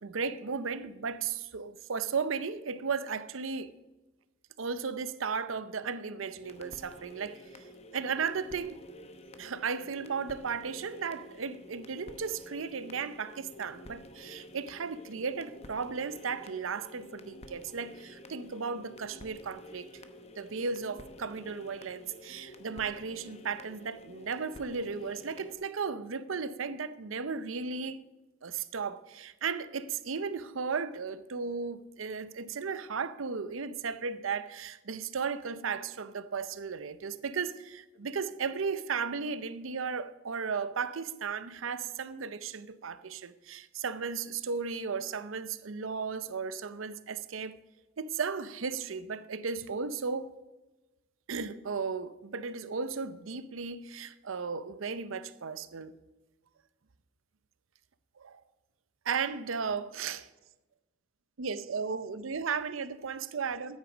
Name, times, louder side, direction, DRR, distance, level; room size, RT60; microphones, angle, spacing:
voice 1, 0.0-3.7 4.6-7.7 7.9-8.8 9.4-20.0 20.4-28.0 28.4-47.6 48.0-50.3 51.3-56.0 58.2-58.4 59.0-60.3 61.4-63.8, right 5 dB, 90° right, 0.6 m, -35 dB
skipping vudu record, 6.4-25.6, left 1 dB, 30° left, 0.9 m, -50 dB
13.0 x 8.9 x 5.0 m
head